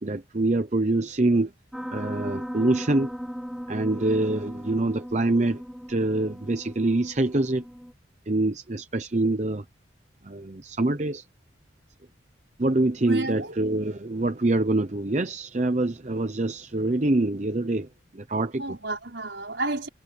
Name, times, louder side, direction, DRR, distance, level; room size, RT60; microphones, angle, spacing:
voice 1, 0.0-1.5 1.9-3.1 3.7-5.6 5.9-7.6 8.3-9.6 10.2-11.2 12.6-17.9 18.1-18.6, right 2 dB, 35° right, 0.8 m, -25 dB
Piano, 1.7-7.9, equal, ahead, 1.7 m, -37 dB
voice 2, 13.0-13.6 18.6-19.9, right 2 dB, 65° right, 5.1 m, -31 dB
head